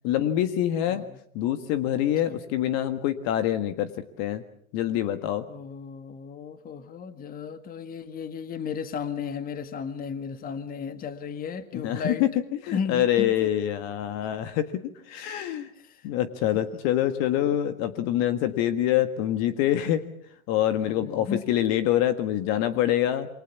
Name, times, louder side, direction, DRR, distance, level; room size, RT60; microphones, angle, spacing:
voice 1, 0.0-1.0 1.3-4.4 4.7-5.4 11.7-12.3 12.6-15.7 16.0-20.0 20.5-23.3, left 12 dB, 40° left, 11 dB, 1.6 m, -25 dB
voice 2, 0.9-1.2 2.2-2.4 5.5-12.2 12.7-13.5 15.7-16.1 16.5-16.8 20.8-21.4, left 6 dB, 20° left, 11 dB, 1.7 m, -35 dB
28.0 x 24.0 x 7.2 m, 0.68 s
hypercardioid pair, 120°, 41 cm